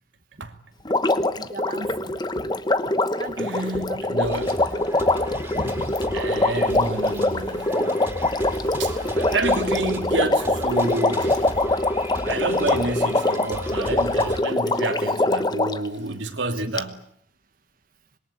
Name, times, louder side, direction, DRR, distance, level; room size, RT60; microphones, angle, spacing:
Water, 0.9-15.9 16.8-16.9, left 2 dB, 20° left, 1.0 m, -23 dB
voice 1, 1.4-2.5 3.2-4.4 5.3-6.0 8.7-8.8 11.3-11.4 15.0-15.2, right 1 dB, 50° right, 1.9 m, -36 dB
voice 2, 3.4-4.6 6.1-8.0 8.4-11.5 12.2-17.0, right 2 dB, 80° right, 2.7 m, -29 dB
sound 1, 4.2-14.4, right 1 dB, 10° right, 4.1 m, -36 dB
26.0 x 22.0 x 8.6 m
head